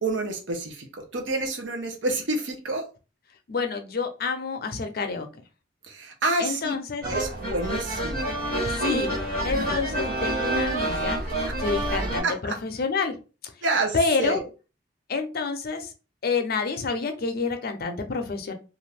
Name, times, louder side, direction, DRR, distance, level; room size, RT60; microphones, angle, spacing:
voice 1, 0.0-2.9 5.8-6.7 7.0-8.3 11.5-11.6 12.2-12.6 13.6-14.4, right 2 dB, 85° right, 5 dB, 0.7 m, -28 dB
voice 2, 3.5-5.3 6.4-7.2 8.7-13.2 13.9-14.4 15.1-15.9 16.2-18.5, left 4 dB, 55° left, 6 dB, 0.5 m, -28 dB
sound 1, 7.0-12.2, right 1 dB, 55° right, 1.4 m, -27 dB
2.6 x 2.4 x 3.3 m, 0.33 s
head